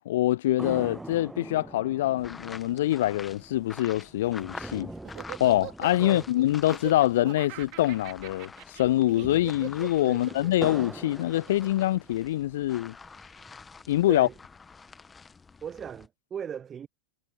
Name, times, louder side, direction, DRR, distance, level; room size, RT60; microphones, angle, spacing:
voice 1, 0.0-4.9 5.4-12.9 13.9-14.3, left 14 dB, 55° left, 0.3 m, -25 dB
sound 1, 0.6-8.2 8.4-8.5 9.0-12.3 12.9-13.9, right 2 dB, 5° right, 1.5 m, -44 dB
sound 2, 2.2-7.2 7.5-16.1, left 4 dB, 15° left, 1.8 m, -47 dB
Laughter, 4.2-12.7, right 26 dB, 40° right, 2.4 m, -43 dB
voice 2, 10.1-10.6 14.1-14.3 15.6-16.9, right 8 dB, 25° right, 0.7 m, -38 dB
figure-of-eight pair, 90°, 0 cm